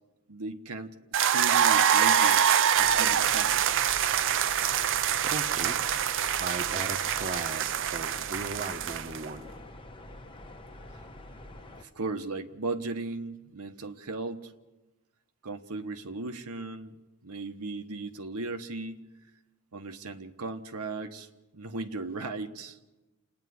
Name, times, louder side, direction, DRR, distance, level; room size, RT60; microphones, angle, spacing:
voice 1, 0.3-2.4 2.8-3.6 10.9-11.0 11.8-14.5 15.4-17.0 17.2-19.0 19.7-22.8, right 3 dB, 80° right, 6 dB, 1.2 m, -37 dB
sound 1, 1.1-9.3, right 9 dB, 60° right, 0.6 m, -25 dB
sound 2, 2.7-11.8, left 1 dB, 25° left, 1.2 m, -46 dB
voice 2, 5.2-5.8 6.4-9.4, right 3 dB, 40° right, 7 dB, 1.1 m, -37 dB
28.0 x 9.7 x 9.6 m, 1.1 s
head